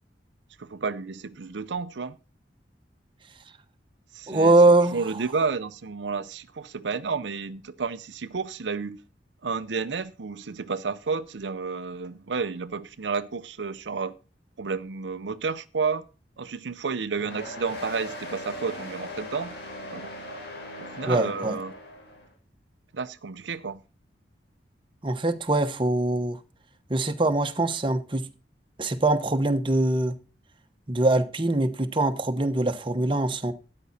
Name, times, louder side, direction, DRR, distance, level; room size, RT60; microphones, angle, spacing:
voice 1, 0.6-2.2 4.1-4.6 4.9-9.0 9.4-14.1 14.6-16.0 16.4-19.5 19.9-20.1 20.8-21.7 22.9-23.8, right 5 dB, 85° right, 0.6 m, -31 dB
voice 2, 4.3-5.0 21.1-21.5 25.0-26.4 26.9-28.3 28.8-30.1 30.9-33.5, right 2 dB, 30° right, 1.1 m, -22 dB
sound 1, 17.2-22.3, left 1 dB, 65° left, 4.3 m, -39 dB
13.0 x 9.8 x 4.2 m
head